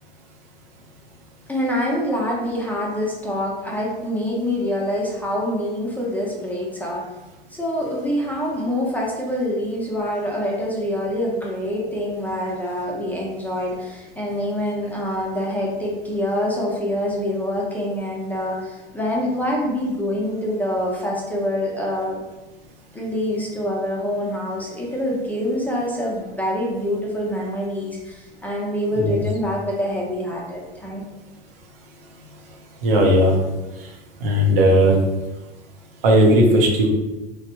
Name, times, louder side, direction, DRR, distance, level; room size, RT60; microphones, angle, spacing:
voice 1, 1.5-7.0 7.5-22.2 22.9-31.0, left 1 dB, 5° left, -4 dB, 0.6 m, -25 dB
voice 2, 32.8-33.4 34.2-35.0 36.0-36.9, equal, 65° right, 0 dB, 0.7 m, -16 dB
3.1 x 2.1 x 2.9 m, 1.1 s
figure-of-eight pair, 85°, 30 cm